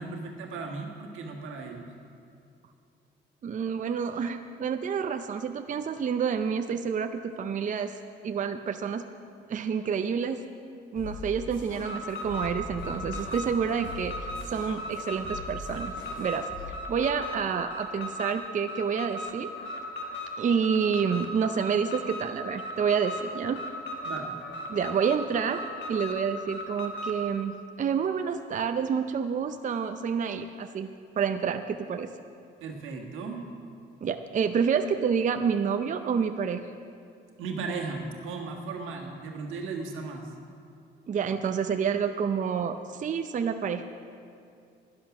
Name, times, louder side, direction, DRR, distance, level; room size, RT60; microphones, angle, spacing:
voice 1, 0.0-1.9 24.0-24.3 32.6-33.5 37.4-40.3, right 4 dB, 85° right, 1 dB, 1.6 m, -36 dB
voice 2, 3.4-7.9 8.2-9.0 9.5-10.4 10.9-14.2 14.5-19.5 20.4-23.6 24.7-25.6 25.9-30.9 31.2-32.1 34.0-36.6 41.1-43.9, right 6 dB, 40° right, 7 dB, 0.5 m, -28 dB
sound 1, 11.0-16.7, left 3 dB, 80° left, 2.9 m, -42 dB
Alarm, 11.7-27.2, left 1 dB, 65° left, 1.7 m, -37 dB
12.0 x 10.5 x 6.0 m, 2.4 s
cardioid pair, 90°, 20 cm